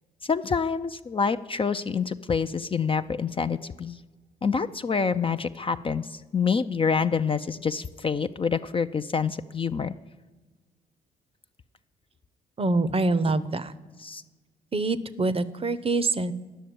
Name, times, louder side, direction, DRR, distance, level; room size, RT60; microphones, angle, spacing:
voice 1, 0.2-4.0 4.4-9.9 14.0-14.2, left 5 dB, 30° left, 9 dB, 0.4 m, -27 dB
voice 2, 12.6-13.7 14.7-16.3, right 2 dB, 30° right, 15 dB, 0.7 m, -25 dB
10.0 x 6.5 x 8.7 m, 1.3 s
hypercardioid pair, 50°, 19 cm